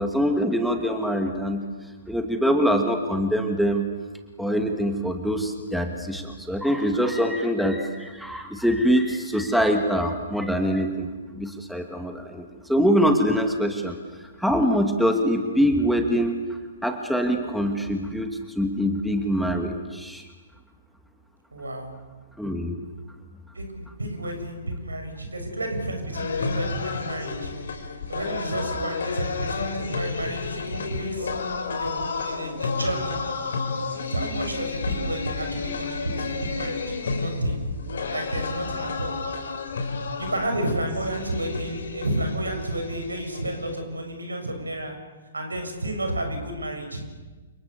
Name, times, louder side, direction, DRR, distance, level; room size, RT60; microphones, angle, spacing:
voice 1, 0.0-1.6 2.1-3.9 4.4-11.1 11.3-16.3 16.8-20.3 22.4-22.8, equal, ahead, 4 dB, 2.4 m, -24 dB
voice 2, 21.5-21.9 23.5-27.5 28.1-31.3 31.7-33.2 34.1-37.6 38.1-39.2 40.2-44.9 45.3-47.0, right 1 dB, 75° right, 5 dB, 6.9 m, -31 dB
sound 1, 26.1-43.8, left 4 dB, 60° left, 4.0 m, -31 dB
30.0 x 27.5 x 7.0 m, 1.3 s
figure-of-eight pair, 115°, 0 cm